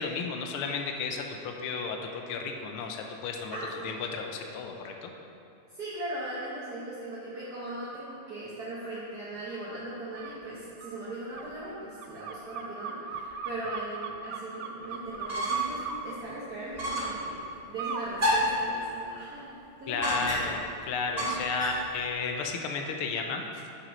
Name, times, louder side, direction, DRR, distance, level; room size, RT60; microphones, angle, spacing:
voice 1, 0.0-3.6 3.8-5.1 19.9-23.4, left 4 dB, 85° left, 3 dB, 1.6 m, -33 dB
voice 2, 3.5-3.9 5.7-17.4 17.7-20.5, right 1 dB, 50° right, -8 dB, 1.6 m, -39 dB
sound 1, 10.1-10.4 10.8-15.9 17.8-18.1 18.5-19.3, right 6 dB, 75° right, 0.9 m, -39 dB
sound 2, 15.1-15.8 16.1-16.2 16.8-17.2 18.2-18.6 20.0-20.6 21.2-21.9, equal, 20° right, 1.5 m, -29 dB
7.0 x 6.1 x 5.2 m, 2.7 s
omnidirectional pair, 2.4 m